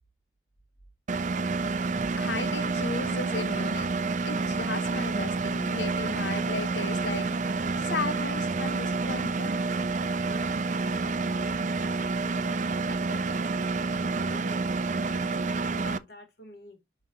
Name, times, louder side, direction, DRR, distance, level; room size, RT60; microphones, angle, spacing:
Engine, 1.1-16.0, right 3 dB, 40° right, 0.5 m, -29 dB
voice 1, 2.2-9.7, left 4 dB, 80° left, 1.1 m, -36 dB
voice 2, 10.0-13.6 14.2-16.8, left 1 dB, 60° left, 2.8 m, -49 dB
11.0 x 4.1 x 2.8 m
head